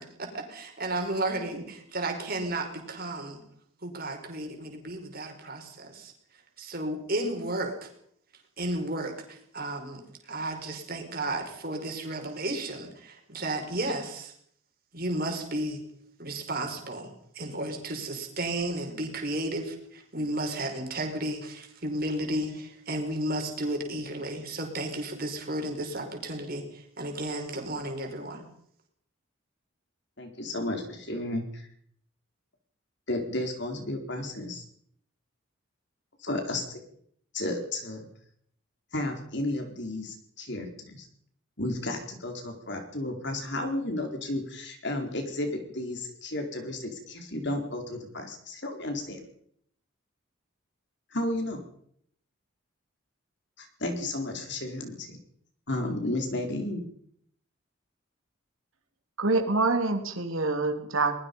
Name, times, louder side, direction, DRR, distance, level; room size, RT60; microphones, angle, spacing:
voice 1, 0.0-3.4 3.8-6.1 6.6-7.9 8.6-14.3 14.9-15.8 16.2-28.5, right 1 dB, 45° right, 3 dB, 5.1 m, -33 dB
voice 2, 30.2-31.6 33.1-34.6 36.2-36.8 37.3-38.1 38.9-41.1 41.6-49.2 51.1-51.6 53.6-55.2 55.7-56.8, left 1 dB, 55° left, 4 dB, 4.4 m, -33 dB
voice 3, 59.2-61.2, right 3 dB, 75° right, 4 dB, 3.2 m, -26 dB
23.0 x 20.5 x 5.5 m, 0.67 s
head